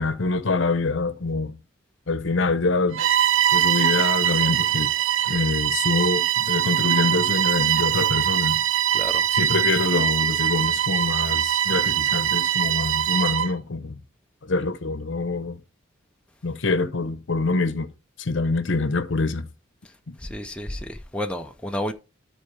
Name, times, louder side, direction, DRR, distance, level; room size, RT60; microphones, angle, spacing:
voice 1, 0.0-1.6 2.1-3.0 3.5-4.9 5.3-8.6 9.3-14.0 14.4-15.6 16.4-17.9 18.2-19.5 20.1-20.2, left 3 dB, 65° left, 0.8 m, -25 dB
Bowed string instrument, 2.9-13.5, right 10 dB, 75° right, 0.5 m, -22 dB
voice 2, 8.9-9.2 20.2-21.9, left 1 dB, 5° left, 0.5 m, -31 dB
12.5 x 4.6 x 3.3 m
head